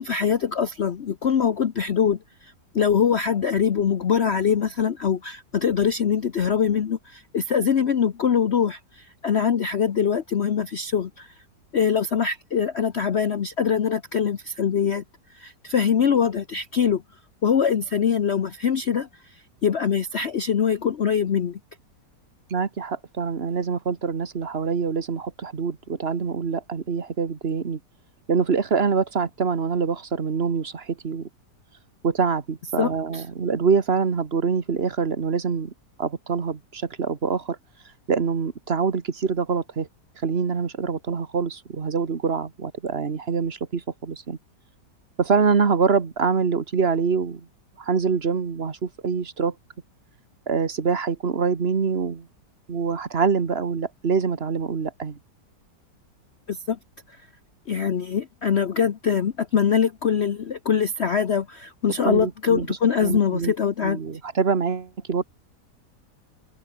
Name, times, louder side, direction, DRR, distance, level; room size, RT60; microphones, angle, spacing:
voice 1, 0.0-11.3 11.7-15.0 15.3-17.0 17.4-21.6 32.8-33.2 56.5-56.8 57.1-57.2 57.7-64.0, left 7 dB, 45° left, 1.0 m, -23 dB
voice 2, 22.5-27.8 28.3-31.3 32.0-35.7 36.0-37.6 38.1-39.9 40.2-44.4 45.2-47.5 47.8-49.5 50.5-52.3 52.7-55.2 62.0-63.5 63.8-65.2, right 5 dB, 40° right, 1.6 m, -25 dB
omnidirectional pair, 1.8 m